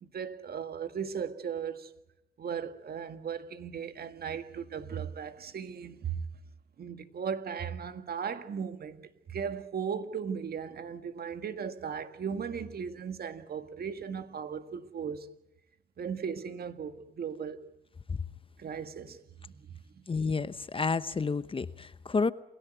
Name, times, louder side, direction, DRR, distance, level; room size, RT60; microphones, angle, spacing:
voice 1, 0.0-1.9 2.4-6.2 6.8-15.3 16.0-17.6 18.6-19.2 19.4-19.7 19.9-20.0, right 7 dB, 50° right, 1.9 m, -37 dB
voice 2, 20.1-22.3, left 4 dB, 25° left, 0.9 m, -30 dB
27.5 x 17.0 x 9.1 m
cardioid pair, 90°, 20 cm